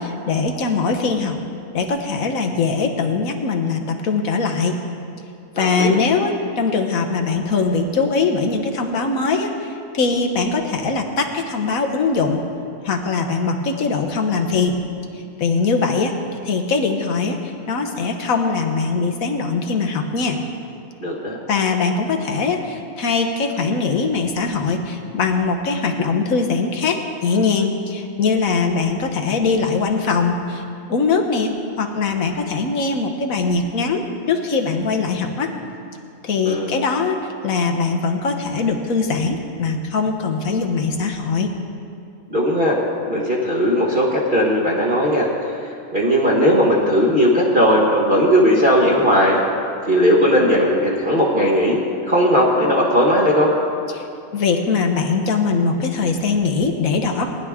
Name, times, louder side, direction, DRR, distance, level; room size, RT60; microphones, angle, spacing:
voice 1, 0.0-1.4 1.7-4.8 5.6-12.4 12.8-14.8 15.1-16.1 16.4-20.4 21.5-30.6 30.9-35.5 36.2-41.6 53.9-54.0 54.3-57.2, left 4 dB, 75° left, 3 dB, 1.5 m, -21 dB
voice 2, 5.5-6.0 21.0-21.4 36.4-36.7 42.3-42.8 43.1-45.3 45.6-49.4 49.9-53.5, equal, 40° right, -7 dB, 1.6 m, -17 dB
19.0 x 11.0 x 3.6 m, 2.5 s
omnidirectional pair, 1.5 m